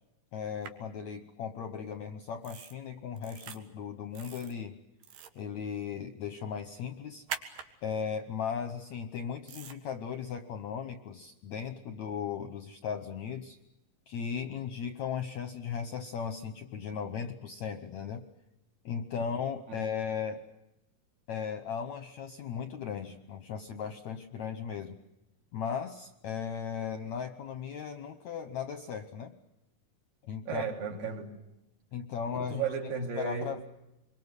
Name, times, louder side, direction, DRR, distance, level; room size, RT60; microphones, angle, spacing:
voice 1, 0.3-4.7 5.4-7.3 7.8-13.6 14.1-18.2 18.9-20.4 21.3-25.0 25.5-29.3 30.2-30.7 31.9-32.7 33.2-33.6, left 7 dB, 65° left, 8 dB, 1.8 m, -37 dB
sound 1, 0.6-0.7 2.4-2.7 3.2-3.6 4.1-4.5 5.0-5.4 7.3-7.7 9.5-9.7, right 8 dB, 85° right, 3.8 m, -41 dB
voice 2, 30.5-31.3 32.4-33.5, right 6 dB, 65° right, 1 dB, 4.8 m, -34 dB
26.5 x 23.0 x 8.2 m, 0.91 s
omnidirectional pair, 4.5 m